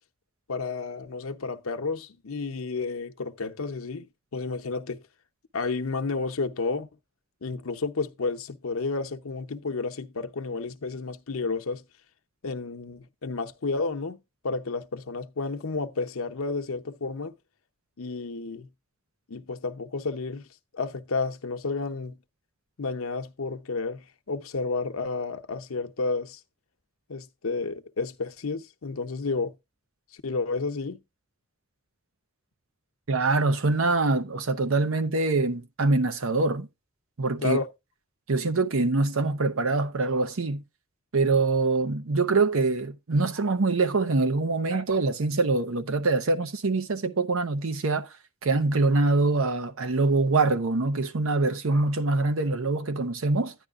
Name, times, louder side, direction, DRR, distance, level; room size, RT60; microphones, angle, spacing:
voice 1, 0.5-5.0 5.5-6.9 7.4-11.8 12.4-17.3 18.0-18.7 19.3-20.4 20.7-22.2 22.8-26.4 27.1-29.5 30.1-31.0 37.4-37.7, left 4 dB, 90° left, 0.8 m, -31 dB
voice 2, 33.1-36.7 37.2-37.6 38.3-40.6 41.1-48.1 48.4-53.5, right 3 dB, 80° right, 0.8 m, -24 dB
10.0 x 10.0 x 2.4 m
head